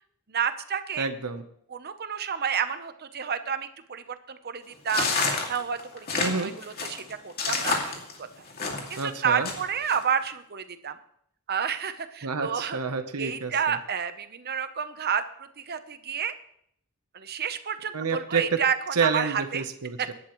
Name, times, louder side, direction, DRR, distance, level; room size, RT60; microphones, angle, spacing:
voice 1, 0.3-1.1 1.7-5.1 5.5-7.8 8.4-8.5 8.9-11.0 11.5-12.8 13.2-15.2 15.6-16.3 17.1-19.6, right 7 dB, 45° right, 10 dB, 0.8 m, -30 dB
voice 2, 1.0-1.4 6.2-6.5 9.0-9.5 12.2-13.8 17.9-18.6 18.9-20.1, right 5 dB, 85° right, 9 dB, 1.0 m, -29 dB
sound 1, 4.9-9.0 9.4-10.0, left 4 dB, 45° left, 2.4 m, -28 dB
23.5 x 11.0 x 3.1 m, 0.69 s
head